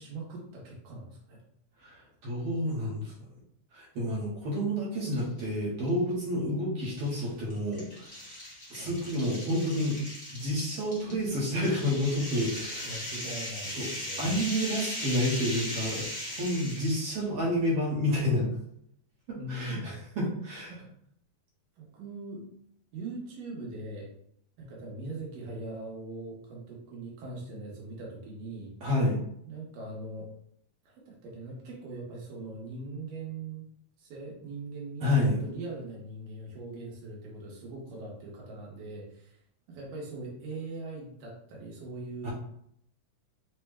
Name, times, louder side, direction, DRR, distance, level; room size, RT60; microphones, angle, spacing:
voice 1, 0.0-1.4 8.8-9.0 12.2-12.5 12.8-14.3 19.4-19.9 20.7-20.9 21.8-22.4 22.9-24.1 24.6-28.7 29.5-30.3 30.9-33.7 34.0-39.4 39.7-42.3, right 2 dB, 80° right, -3 dB, 2.8 m, -41 dB
voice 2, 1.8-3.1 3.7-8.0 8.7-10.0 10.3-13.0 13.8-13.9 14.2-18.5 19.3-20.7 28.8-29.2 35.0-35.4 42.2-42.3, left 1 dB, 65° right, -4 dB, 1.6 m, -29 dB
sound 1, 5.0-5.4 5.9-6.0 7.0-17.1, left 1 dB, 70° left, 0.6 m, -38 dB
5.8 x 2.2 x 3.4 m, 0.70 s
omnidirectional pair, 3.8 m